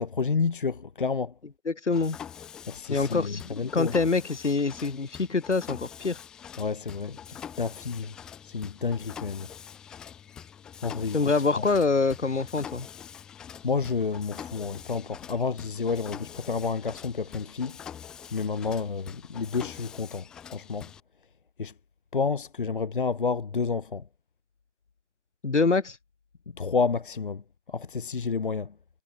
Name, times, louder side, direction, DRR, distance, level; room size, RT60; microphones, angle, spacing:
voice 1, 0.0-1.3 2.7-3.9 6.6-8.1 8.4-9.5 10.8-11.2 13.6-17.8 18.3-20.2 20.5-20.9 21.6-21.7 22.1-24.0 26.6-27.4 27.7-28.7, left 5 dB, 45° left, 1.0 m, -30 dB
voice 2, 1.6-2.2 2.9-6.2 11.1-12.9 25.4-26.0, left 4 dB, 75° left, 4.5 m, -25 dB
Mechanisms, 1.9-21.0, left 8 dB, ahead, 1.2 m, -45 dB
figure-of-eight pair, 170°, 36 cm